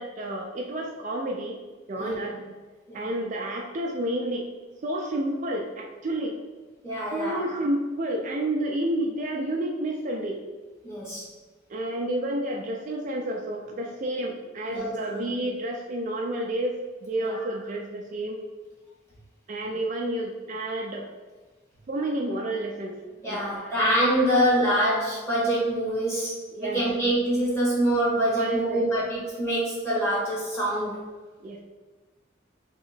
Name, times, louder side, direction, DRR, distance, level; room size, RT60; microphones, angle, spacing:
voice 1, 0.0-1.6 1.9-2.5 2.9-4.5 4.8-6.3 7.1-10.4 11.7-18.4 19.5-21.1 21.9-23.0 23.3-23.8 26.5-26.8 28.4-28.8 31.4-31.6, right 1 dB, 40° right, 0 dB, 0.3 m, -30 dB
voice 2, 6.8-7.4 10.8-11.2 14.7-15.2 17.2-17.4 23.2-31.0, right 1 dB, 15° left, -7 dB, 1.3 m, -25 dB
3.0 x 2.8 x 4.2 m, 1.3 s
head